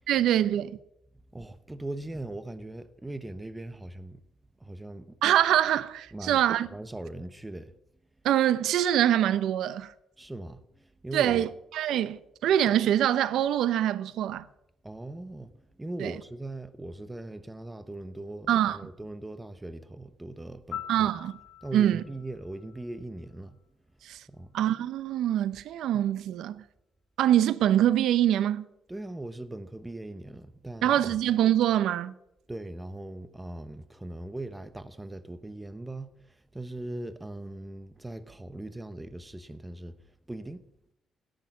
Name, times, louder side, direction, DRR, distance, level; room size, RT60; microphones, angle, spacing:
voice 1, 0.1-0.8 5.2-6.7 8.2-9.9 11.1-14.5 16.0-16.1 18.5-18.8 20.9-21.4 21.7-22.0 24.0-24.2 24.5-26.6 27.2-28.7 30.8-32.1, right 11 dB, 80° right, 0.7 m, -24 dB
voice 2, 1.3-4.2 4.6-5.2 6.1-6.4 6.7-7.7 10.2-11.5 14.8-21.1 21.6-23.6 24.3-24.5 28.9-31.1 32.5-40.0 40.3-40.7, right 2 dB, 15° right, 1.0 m, -40 dB
Piano, 20.7-23.6 31.8-32.0, left 10 dB, 65° left, 3.1 m, -44 dB
17.0 x 6.6 x 9.3 m
cardioid pair, 90°, 0 cm